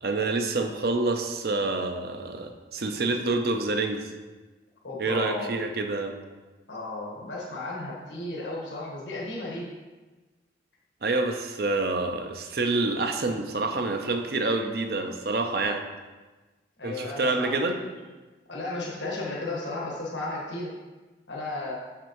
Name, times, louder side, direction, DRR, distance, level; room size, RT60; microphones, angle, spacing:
voice 1, 0.0-4.0 5.0-6.1 11.0-15.9 16.8-17.8, right 3 dB, 55° right, 5 dB, 0.5 m, -27 dB
voice 2, 4.8-5.5 6.7-9.7 16.8-17.9 18.5-20.7 21.3-21.7, left 2 dB, 85° left, -3 dB, 1.2 m, -34 dB
6.2 x 5.9 x 3.0 m, 1.2 s
head